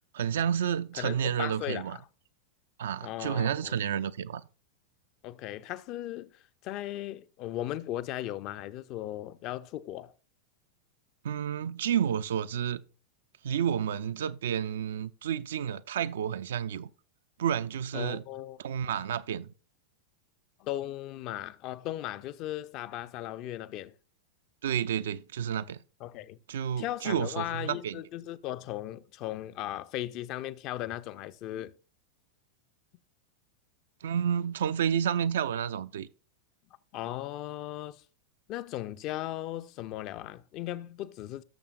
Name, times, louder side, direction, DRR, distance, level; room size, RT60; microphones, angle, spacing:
voice 1, 0.1-2.0 2.8-4.4 11.2-12.8 13.4-16.9 17.4-18.2 18.6-19.5 24.6-25.8 26.5-28.0 34.0-36.1, right 8 dB, 60° right, 0.4 m, -30 dB
voice 2, 1.0-2.0 3.0-3.8 5.2-6.3 6.6-10.1 17.9-18.6 20.6-23.9 26.0-26.4 26.8-31.7 36.9-38.0 38.5-41.4, left 14 dB, 40° left, 0.5 m, -37 dB
17.5 x 6.8 x 2.4 m
figure-of-eight pair, 90°, 0 cm